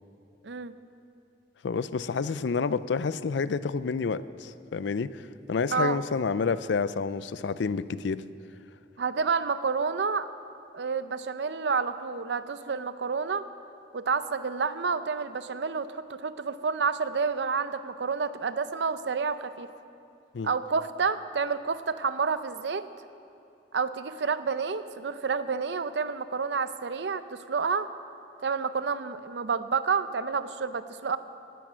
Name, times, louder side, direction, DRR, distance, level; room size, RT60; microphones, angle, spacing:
voice 1, 0.4-0.8 5.7-6.0 9.0-10.3 10.7-13.4 13.9-19.7 20.4-22.8 23.7-27.9 28.4-31.2, right 5 dB, 75° right, 12 dB, 0.6 m, -29 dB
voice 2, 1.6-8.2 20.3-20.5, left 5 dB, 80° left, 15 dB, 0.5 m, -29 dB
17.5 x 10.5 x 6.2 m, 2.7 s
head